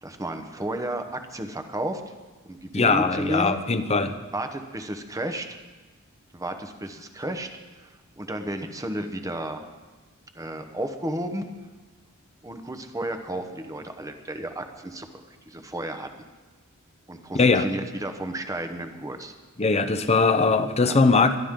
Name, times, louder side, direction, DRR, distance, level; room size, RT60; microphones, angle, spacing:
voice 1, 0.0-2.1 2.4-3.6 4.3-5.6 6.3-7.5 7.7-9.6 10.3-11.5 12.4-16.1 17.1-19.3 20.2-20.3 20.8-21.0, right 1 dB, 15° right, 7 dB, 1.1 m, -33 dB
voice 2, 2.7-4.1 17.3-17.7 19.6-21.4, left 4 dB, 30° left, 9 dB, 0.8 m, -20 dB
21.5 x 12.0 x 3.8 m, 1.3 s
head